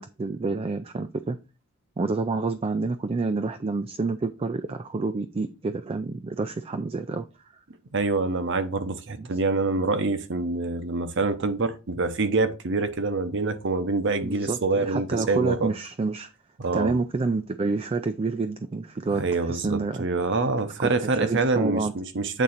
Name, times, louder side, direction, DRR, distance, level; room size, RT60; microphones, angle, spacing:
voice 1, 0.0-1.4 2.0-7.2 9.2-9.3 14.2-16.3 16.7-20.1 20.8-21.9, right 3 dB, 25° right, 0.3 m, -28 dB
voice 2, 7.9-15.7 16.6-16.9 19.2-22.4, right 3 dB, 55° right, 0.8 m, -26 dB
8.2 x 3.7 x 4.3 m
head